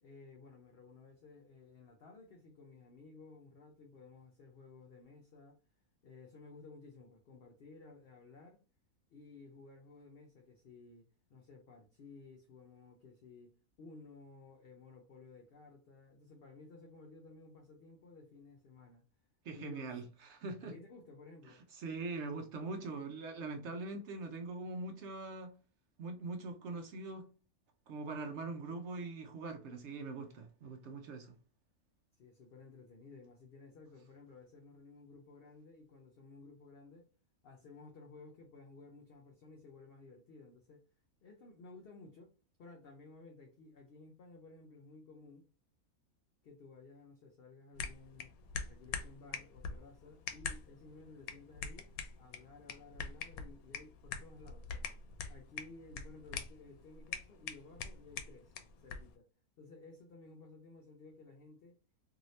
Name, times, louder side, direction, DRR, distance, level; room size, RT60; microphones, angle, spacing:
voice 1, 0.0-5.6 6.0-8.6 9.1-13.5 13.8-19.0 19.5-20.0 20.6-21.6 32.2-37.1 37.4-40.8 41.2-42.3 42.6-45.5 46.4-48.3 48.7-51.9 52.2-54.9 55.3-59.2 59.6-61.8, left 3 dB, 60° left, 0.6 m, -56 dB
voice 2, 19.4-20.7 21.8-25.5 26.0-27.3 27.9-31.3, right 3 dB, 65° right, 0.7 m, -42 dB
sound 1, 47.8-59.1, left 6 dB, 80° left, 1.0 m, -45 dB
2.7 x 2.7 x 3.1 m
omnidirectional pair, 1.5 m